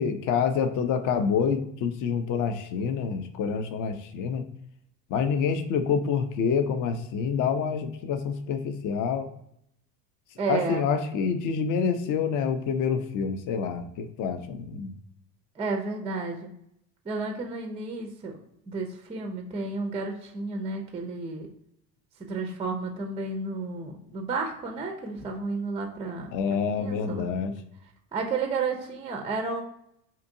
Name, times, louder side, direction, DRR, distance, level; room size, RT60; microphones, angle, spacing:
voice 1, 0.0-4.4 5.1-9.3 10.5-14.9 26.3-27.5, left 6 dB, 40° left, 9 dB, 0.5 m, -27 dB
voice 2, 10.4-10.9 15.6-16.5 17.1-18.4 18.7-21.5 22.2-26.3 26.8-27.3 28.1-29.6, right 4 dB, 15° right, 3 dB, 0.4 m, -32 dB
2.7 x 2.5 x 2.5 m, 0.76 s
hypercardioid pair, 65°, 50 cm